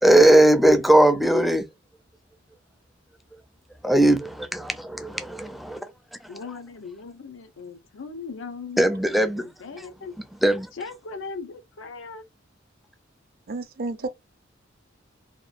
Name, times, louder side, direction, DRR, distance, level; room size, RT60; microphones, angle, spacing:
voice 1, 0.0-1.7 3.8-5.9 8.8-9.5 9.8-9.9 10.4-10.7, right 1 dB, ahead, 0.4 m, -19 dB
voice 2, 6.3-8.8 9.4-10.2 10.7-12.2, left 4 dB, 80° left, 0.6 m, -38 dB
voice 3, 13.5-14.1, right 3 dB, 50° right, 0.5 m, -31 dB
2.9 x 2.2 x 2.4 m
head